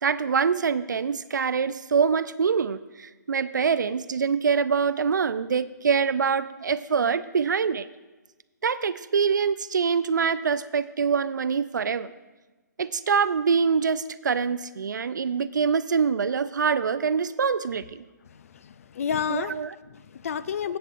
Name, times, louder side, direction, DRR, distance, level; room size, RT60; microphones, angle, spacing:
voice 1, 0.0-7.9 8.6-12.1 12.8-18.0 19.3-19.7, right 6 dB, 75° right, 14 dB, 0.4 m, -25 dB
voice 2, 18.3-19.6 19.9-20.8, left 7 dB, 50° left, 16 dB, 0.4 m, -31 dB
18.0 x 7.9 x 2.5 m, 1.2 s
hypercardioid pair, 150°, 10 cm